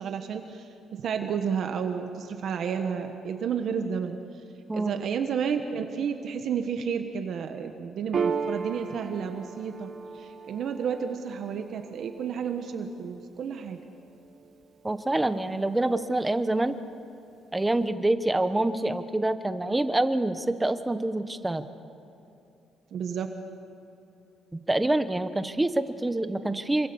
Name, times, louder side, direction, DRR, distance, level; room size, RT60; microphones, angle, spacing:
voice 1, 0.0-4.2 4.7-13.8 22.9-23.3, right 7 dB, 50° right, 5 dB, 1.4 m, -31 dB
Piano, 8.1-15.0, right 5 dB, 35° right, 1.0 m, -36 dB
voice 2, 14.8-16.8 17.5-21.6 24.5-26.9, right 2 dB, 10° right, 10 dB, 0.9 m, -26 dB
27.5 x 25.0 x 7.1 m, 2.8 s
cardioid pair, 170°, 0 cm